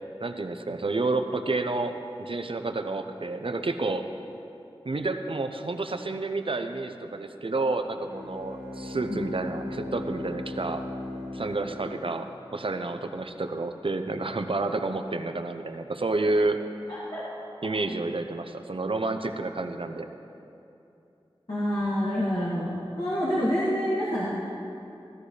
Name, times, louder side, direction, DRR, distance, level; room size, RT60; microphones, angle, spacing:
voice 1, 0.2-4.0 4.8-10.8 11.3-16.6 17.6-20.1, right 2 dB, 60° right, 7 dB, 0.7 m, -30 dB
Bowed string instrument, 7.9-12.5, left 2 dB, 85° left, 2.7 m, -38 dB
voice 2, 16.9-17.2 21.5-24.3, equal, 55° left, -10 dB, 2.5 m, -27 dB
15.0 x 13.5 x 3.3 m, 2.7 s
wide cardioid pair, 45°, 10 cm